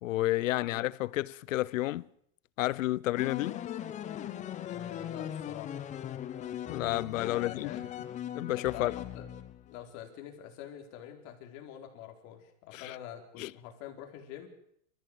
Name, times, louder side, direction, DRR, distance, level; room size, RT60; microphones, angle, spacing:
voice 1, 0.0-2.1 2.6-3.6 6.7-7.7 8.3-9.0 12.7-12.9 13.4-13.5, left 16 dB, 75° left, 0.8 m, -31 dB
sound 1, 3.2-9.8, left 10 dB, 20° left, 1.0 m, -39 dB
voice 2, 4.6-6.1 7.3-8.0 8.6-9.3 9.7-14.5, left 10 dB, 40° left, 4.2 m, -46 dB
28.0 x 14.5 x 8.0 m
supercardioid pair, 160°, 39 cm